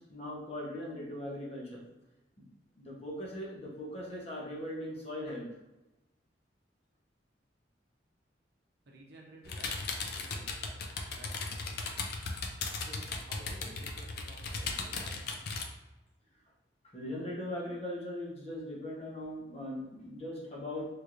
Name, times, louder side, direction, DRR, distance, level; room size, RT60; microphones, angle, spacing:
voice 1, 0.0-1.9 2.4-2.5 2.7-5.5 16.9-21.0, left 1 dB, 35° left, -4 dB, 0.8 m, -40 dB
voice 2, 8.9-10.8 11.0-12.1 12.7-15.5, right 1 dB, 60° right, -1 dB, 0.7 m, -54 dB
sound 1, 9.4-15.6, left 3 dB, 55° left, 0.4 m, -37 dB
3.1 x 3.0 x 2.5 m, 1.0 s
head